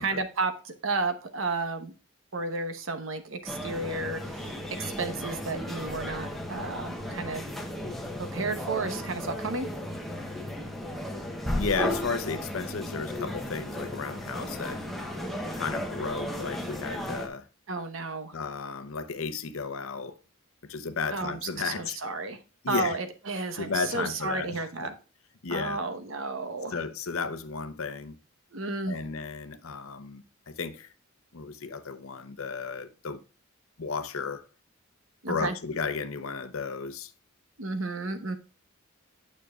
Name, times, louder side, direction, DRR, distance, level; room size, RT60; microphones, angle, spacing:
voice 1, 0.0-1.9 2.3-7.4 8.2-9.7 17.7-18.3 21.1-21.4 21.6-22.4 22.7-24.9 25.5-26.8 28.5-29.0 35.2-35.5 37.6-38.4, right 3 dB, 65° right, 1.0 m, -32 dB
sound 1, 3.5-17.3, left 1 dB, ahead, 1.0 m, -35 dB
voice 2, 11.5-14.8 15.5-17.5 18.3-20.2 20.6-22.0 22.6-23.0 23.6-24.9 25.4-25.8 26.7-28.2 28.9-30.9 31.3-33.2 33.8-34.5 35.3-37.1, left 4 dB, 80° left, 0.7 m, -34 dB
9.1 x 6.2 x 2.3 m
head